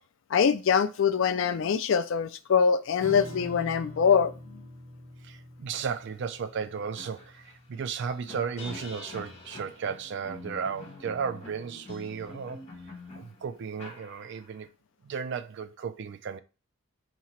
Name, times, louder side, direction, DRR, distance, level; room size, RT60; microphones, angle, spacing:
voice 1, 0.3-4.3, left 6 dB, 60° left, 0.3 m, -24 dB
Strum, 3.0-9.8, equal, 75° right, 1.2 m, -46 dB
voice 2, 5.2-12.6 13.2-14.7 15.0-16.4, right 6 dB, 55° right, 0.3 m, -34 dB
sound 1, 6.2-6.3 6.6-14.6, left 2 dB, 30° left, 1.3 m, -45 dB
2.9 x 2.8 x 4.3 m
head